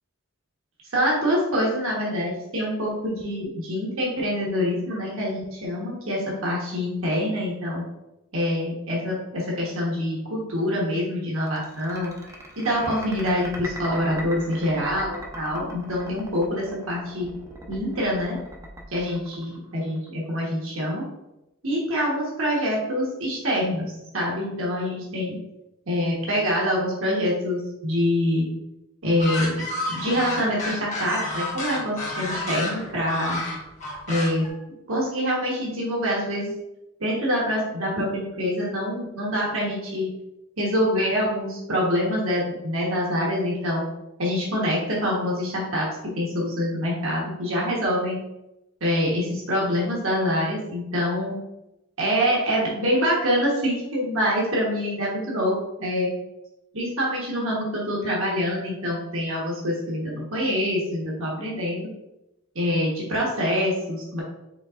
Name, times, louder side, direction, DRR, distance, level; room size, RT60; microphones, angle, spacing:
voice 1, 0.9-7.8 8.3-12.3 12.6-17.3 17.7-18.4 18.9-21.0 21.6-25.4 25.9-28.5 29.0-33.4 34.1-34.5 34.9-36.5 37.0-40.1 40.6-43.8 44.2-45.9 46.1-48.2 48.8-51.3 52.0-56.1 56.7-61.9 62.5-64.2, equal, 70° right, -4 dB, 1.3 m, -25 dB
sound 1, 11.4-20.1, equal, 15° right, 0.6 m, -40 dB
sound 2, 29.2-34.5, left 2 dB, 35° left, 1.3 m, -30 dB
5.4 x 4.0 x 2.5 m, 0.90 s
head